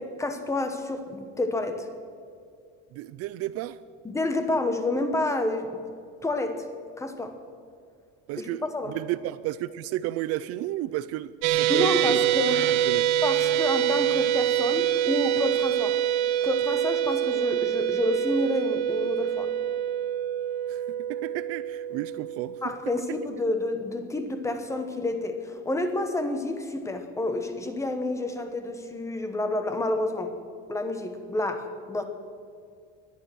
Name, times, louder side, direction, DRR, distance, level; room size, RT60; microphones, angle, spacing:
voice 1, 0.2-1.9 4.0-5.8 6.2-6.7 7.0-7.3 8.4-8.9 11.7-12.9 13.2-16.0 16.4-19.5 22.6-30.3 30.7-32.0, left 2 dB, 10° left, 1.1 m, -29 dB
voice 2, 2.9-3.8 8.3-12.5 12.8-13.1 20.7-20.8 21.1-22.6, right 14 dB, 55° right, 0.5 m, -32 dB
sound 1, 11.4-23.8, right 11 dB, 90° right, 1.0 m, -26 dB
19.5 x 11.5 x 6.3 m
cardioid pair, 175°, 30 cm